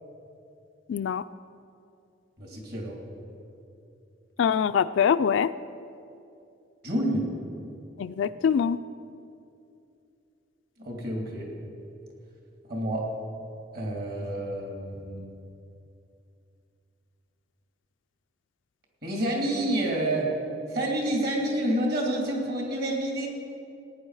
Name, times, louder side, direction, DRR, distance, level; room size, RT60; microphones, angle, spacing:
voice 1, 0.9-1.2 4.4-5.5 8.0-8.8, left 7 dB, 70° left, 12 dB, 0.3 m, -24 dB
voice 2, 2.4-2.9 6.8-7.2 10.8-11.5 12.7-13.0 13.7-15.3 19.0-20.3 20.7-23.3, right 1 dB, 55° right, -1 dB, 2.7 m, -28 dB
18.0 x 9.8 x 4.8 m, 2.6 s
head